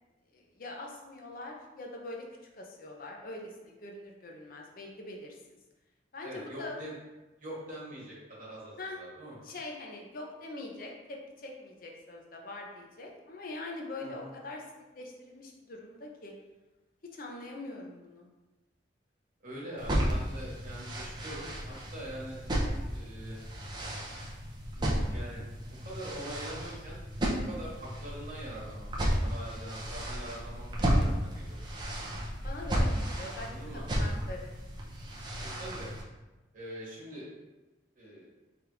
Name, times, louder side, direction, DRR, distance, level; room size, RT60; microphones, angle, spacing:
voice 1, 0.3-2.2 2.5-5.4 6.1-6.8 8.8-9.0 9.4-16.3 17.1-18.3 32.4-34.6, left 2 dB, 50° left, 0 dB, 0.6 m, -43 dB
voice 2, 6.2-6.9 7.4-9.4 14.0-14.3 19.4-22.4 22.9-23.4 24.8-25.4 25.7-27.0 27.4-31.7 33.4-34.1 35.4-35.9 36.5-37.3 38.0-38.3, right 1 dB, 45° right, -6 dB, 1.3 m, -44 dB
sound 1, 19.8-36.0, equal, 25° right, 0.6 m, -33 dB
3.3 x 2.5 x 4.5 m, 1.1 s
head